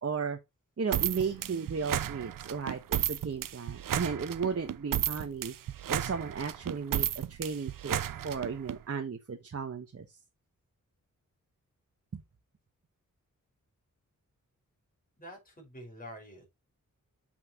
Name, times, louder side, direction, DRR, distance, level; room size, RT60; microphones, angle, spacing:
voice 1, 0.0-0.4 0.8-5.5 5.9-10.0 12.1-12.2, right 5 dB, 45° right, 1.2 m, -35 dB
sound 1, 0.9-8.8, right 10 dB, 85° right, 0.6 m, -33 dB
voice 2, 15.2-16.4, equal, 25° left, 5.0 m, -47 dB
8.2 x 5.9 x 2.9 m
wide cardioid pair, 115°, 32 cm